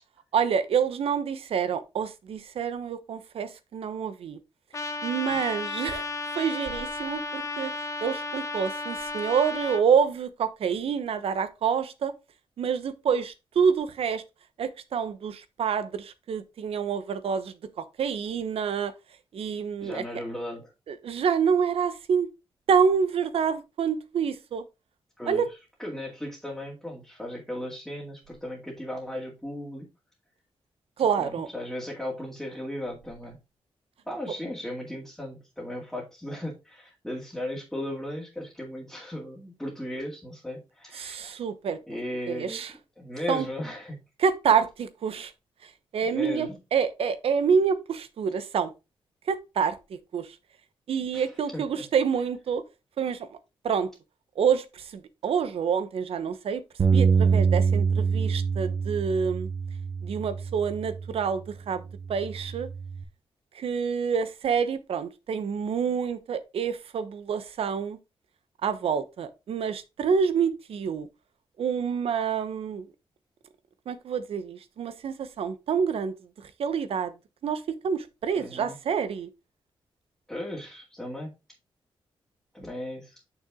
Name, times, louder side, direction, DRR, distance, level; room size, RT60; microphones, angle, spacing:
voice 1, 0.3-4.4 5.0-6.0 6.4-7.7 8.0-12.1 12.6-14.2 14.6-18.9 19.3-20.0 20.9-22.3 22.7-24.6 25.3-25.5 31.0-31.5 41.0-41.8 42.3-42.7 43.3-43.4 44.2-45.3 45.9-48.7 49.3-50.3 50.9-52.6 53.0-53.3 53.6-53.9 54.4-56.6 56.9-59.5 60.0-61.8 62.1-62.7 63.5-68.0 68.6-71.1 71.6-72.8 73.9-76.1 76.6-77.1 77.4-79.3, right 6 dB, 75° right, 1.0 m, -27 dB
Trumpet, 4.7-9.8, left 3 dB, 30° left, 0.9 m, -34 dB
voice 2, 19.8-20.7 25.2-29.9 31.0-33.4 34.1-41.4 41.9-42.6 43.0-44.0 46.0-46.6 51.1-51.8 78.4-78.8 80.3-81.3 82.5-83.2, left 1 dB, 5° left, 2.2 m, -36 dB
Bass guitar, 56.8-61.3 61.9-63.0, right 5 dB, 50° right, 1.1 m, -25 dB
6.8 x 6.0 x 3.7 m
wide cardioid pair, 135°, 10 cm